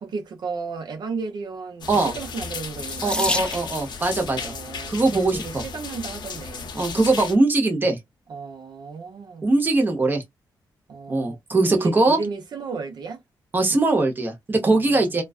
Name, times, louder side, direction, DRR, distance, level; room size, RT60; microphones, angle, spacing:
voice 1, 0.0-3.4 4.4-6.7 8.3-9.5 10.9-13.2 14.6-15.2, right 4 dB, 65° right, 0.7 m, -34 dB
sound 1, 1.8-7.4, left 5 dB, 65° left, 0.6 m, -34 dB
Water tap faucet / Sink (filling or washing), 2.8-4.0 5.0-5.4 6.1-6.2 6.6-6.7, left 1 dB, 10° left, 0.5 m, -29 dB
voice 2, 3.0-4.5 4.9-5.6 6.7-8.0 9.4-10.2 11.1-12.2 13.5-15.2, right 2 dB, 25° right, 0.8 m, -21 dB
2.3 x 2.3 x 2.3 m
cardioid pair, 115°, 8 cm